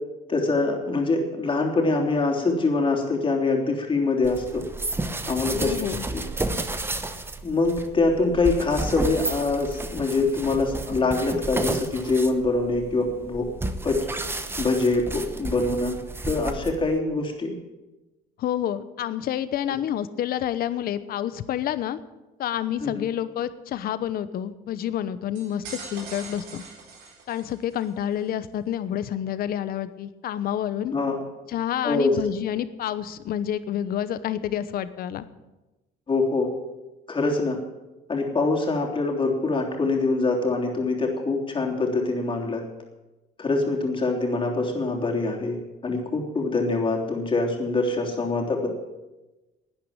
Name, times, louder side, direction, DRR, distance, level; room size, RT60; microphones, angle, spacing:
voice 1, 0.3-4.6 5.3-6.2 7.4-13.5 13.8-14.0 14.6-15.9 16.2-17.5 22.8-23.0 30.9-31.2 31.8-32.2 36.1-36.5 37.1-37.6 38.1-42.6 43.4-48.7, left 3 dB, 30° left, 1 dB, 3.2 m, -24 dB
sound 1, 4.2-17.0, right 2 dB, 15° right, 1.0 m, -32 dB
voice 2, 5.6-6.0 18.4-22.0 22.4-25.6 25.9-26.6 27.3-30.9 31.5-35.3, left 10 dB, 60° left, 14 dB, 0.9 m, -28 dB
sound 2, 25.3-27.9, right 4 dB, 90° right, 3.8 m, -42 dB
11.5 x 9.5 x 8.9 m, 1.1 s
cardioid pair, 115°, 17 cm